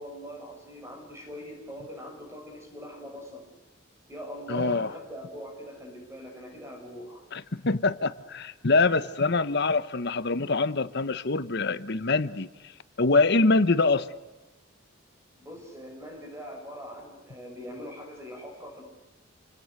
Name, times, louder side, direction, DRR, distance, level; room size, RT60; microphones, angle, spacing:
voice 1, 0.0-3.4 4.1-7.2 15.4-18.8, equal, 15° right, 7.0 m, -42 dB
voice 2, 4.5-4.9 7.3-12.5 13.0-14.1, left 3 dB, 60° left, 1.1 m, -24 dB
28.5 x 26.0 x 6.6 m
head